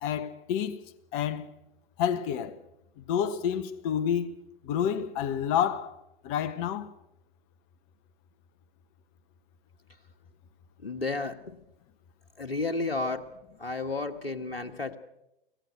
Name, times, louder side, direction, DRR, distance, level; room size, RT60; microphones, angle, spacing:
voice 1, 0.0-0.8 1.1-1.4 2.0-2.6 3.0-4.3 4.6-5.9 6.2-6.9, left 9 dB, 40° left, 1.3 m, -29 dB
voice 2, 10.8-11.3 12.4-13.2 13.6-14.9, left 3 dB, 90° left, 1.4 m, -31 dB
24.5 x 17.5 x 6.3 m
figure-of-eight pair, 105°, 29 cm